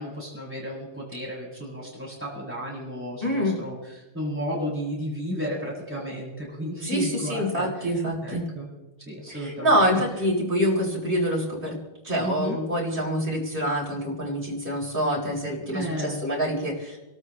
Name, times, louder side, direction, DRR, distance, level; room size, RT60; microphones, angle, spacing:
voice 1, 0.0-8.7 9.1-9.9 12.2-12.6 15.7-16.2, equal, 10° right, -6 dB, 7.6 m, -33 dB
voice 2, 3.2-3.6 6.8-8.4 9.3-11.7 12.0-17.0, equal, 55° right, -4 dB, 4.3 m, -26 dB
29.0 x 13.0 x 3.3 m, 1.0 s
omnidirectional pair, 1.1 m